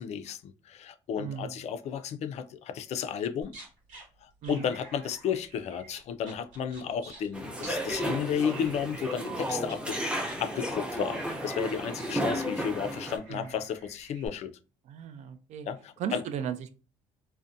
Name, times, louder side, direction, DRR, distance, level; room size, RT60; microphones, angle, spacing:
voice 1, 0.0-3.5 4.2-10.0 10.4-14.5 15.7-16.2, left 7 dB, 60° left, 0.4 m, -33 dB
voice 2, 1.2-1.6 4.4-4.7 13.3-13.5 14.8-15.7 16.0-16.7, right 8 dB, 65° right, 0.4 m, -36 dB
sound 1, 3.4-4.0 4.4-7.3 7.6-8.0 8.4-9.2 9.4-14.3, right 2 dB, 80° right, 1.1 m, -48 dB
sound 2, 7.3-13.2, equal, 5° right, 0.6 m, -33 dB
2.6 x 2.1 x 2.5 m
supercardioid pair, 80°, 13 cm